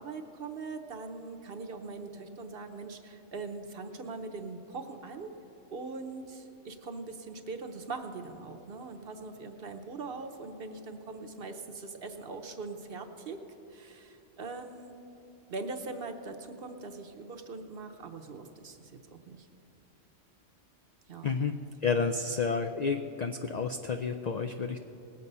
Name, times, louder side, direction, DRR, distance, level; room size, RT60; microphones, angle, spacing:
voice 1, 0.0-5.3 5.7-13.4 13.7-14.9 15.5-19.5 21.1-21.3, right 3 dB, 55° right, 5 dB, 1.0 m, -41 dB
voice 2, 21.8-24.8, left 5 dB, 70° left, 6 dB, 0.4 m, -30 dB
19.0 x 7.9 x 5.4 m, 2.9 s
omnidirectional pair, 1.3 m